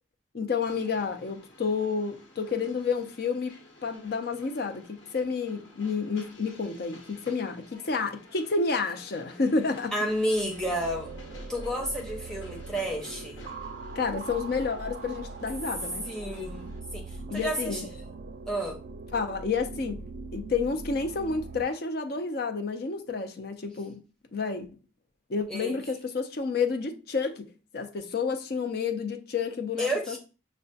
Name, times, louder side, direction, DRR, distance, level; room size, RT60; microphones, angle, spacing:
voice 1, 0.3-3.6 3.8-9.9 14.0-16.1 17.3-17.9 19.1-20.0 20.3-24.0 24.3-24.7 25.3-27.5 27.7-30.2, left 4 dB, 55° left, 0.5 m, -30 dB
Train, 0.7-16.8, left 2 dB, 90° left, 1.1 m, -52 dB
voice 2, 9.9-11.1 11.5-13.4 16.0-17.8 18.5-18.8 25.5-25.8 29.8-30.2, equal, 5° left, 0.9 m, -31 dB
sound 1, 10.0-21.6, right 3 dB, 55° right, 0.3 m, -41 dB
5.8 x 2.1 x 2.7 m
head